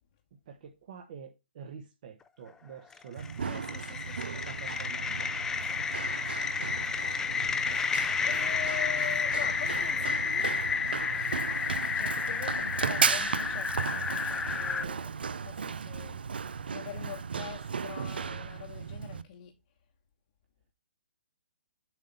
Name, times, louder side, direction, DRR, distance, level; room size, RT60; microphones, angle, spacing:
voice 1, 0.5-5.3, right 6 dB, 50° right, 1.2 m, -48 dB
sound 1, 2.9-14.8, left 5 dB, 10° left, 0.5 m, -31 dB
Run, 3.2-19.2, right 6 dB, 75° right, 0.5 m, -35 dB
voice 2, 3.5-4.4 8.2-10.8 11.9-15.1 15.4-16.2 16.7-19.5, left 12 dB, 45° left, 1.2 m, -44 dB
7.4 x 3.9 x 5.3 m
hypercardioid pair, 135°, 5 cm